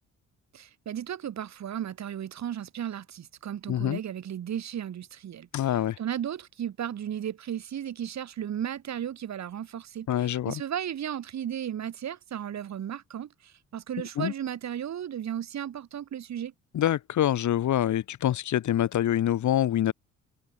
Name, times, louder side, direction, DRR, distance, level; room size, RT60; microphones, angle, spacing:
voice 1, 0.5-5.5 6.0-16.5, right 10 dB, 65° right, 5.9 m, -35 dB
voice 2, 3.7-4.0 5.5-6.0 10.1-10.6 14.2-14.3 16.7-19.9, left 11 dB, 70° left, 6.3 m, -25 dB
cardioid pair, 90°, 30 cm